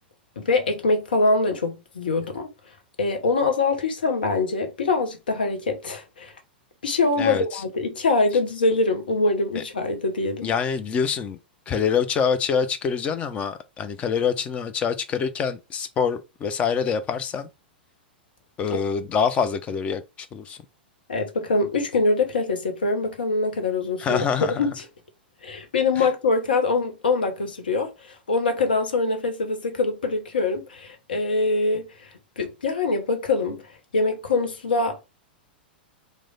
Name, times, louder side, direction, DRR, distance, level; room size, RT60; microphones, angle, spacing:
voice 1, 0.4-2.5 3.0-6.3 6.8-10.5 18.7-18.8 21.1-24.2 24.6-24.7 25.4-31.9 32.4-33.6 33.9-35.0, left 3 dB, 65° left, 0.8 m, -24 dB
voice 2, 7.2-7.6 9.6-9.7 10.4-11.4 11.7-17.5 18.6-20.6 24.0-24.7 26.0-26.1, left 6 dB, 25° left, 0.4 m, -25 dB
3.1 x 2.2 x 3.7 m
figure-of-eight pair, 95°, 5 cm